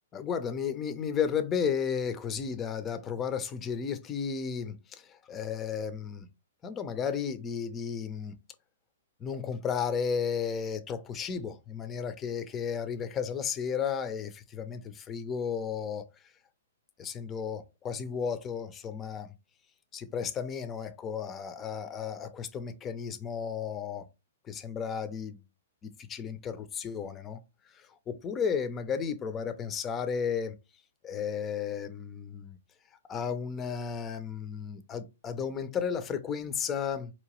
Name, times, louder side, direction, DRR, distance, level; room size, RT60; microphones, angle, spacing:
voice 1, 0.1-6.3 6.6-8.3 9.2-16.1 17.0-19.3 19.9-24.1 24.4-25.4 25.8-27.4 27.7-30.6 31.0-32.6 33.1-37.1, left 7 dB, 20° left, 0.5 m, -33 dB
4.4 x 2.8 x 3.0 m
hypercardioid pair, 145°, 0 cm